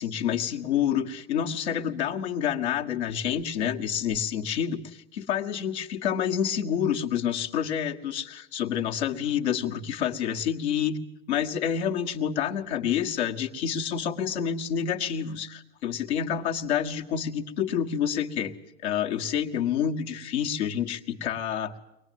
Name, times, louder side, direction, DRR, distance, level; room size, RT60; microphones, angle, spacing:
voice 1, 0.0-11.0 11.3-18.5 18.8-21.8, left 8 dB, 85° left, 2 dB, 1.8 m, -28 dB
24.0 x 19.0 x 9.3 m, 0.90 s
supercardioid pair, 100°, 32 cm